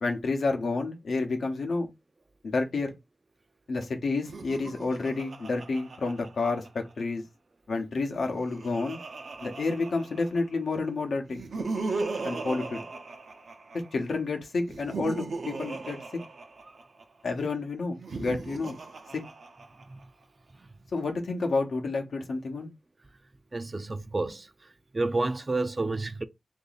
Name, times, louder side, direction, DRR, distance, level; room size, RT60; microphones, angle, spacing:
voice 1, 0.0-1.9 2.4-3.0 3.7-7.2 7.7-9.0 9.4-11.4 12.2-12.8 13.9-16.0 17.2-18.8 19.1-19.2 20.9-22.7, left 3 dB, 80° left, 0.8 m, -30 dB
Laughter, 4.2-6.9 8.0-10.6 11.3-14.0 14.6-17.0 17.9-20.0, right 3 dB, 75° right, 0.7 m, -37 dB
voice 2, 23.5-24.5 24.9-26.2, right 2 dB, 35° right, 0.4 m, -29 dB
2.9 x 2.6 x 4.0 m
wide cardioid pair, 85°, 0 cm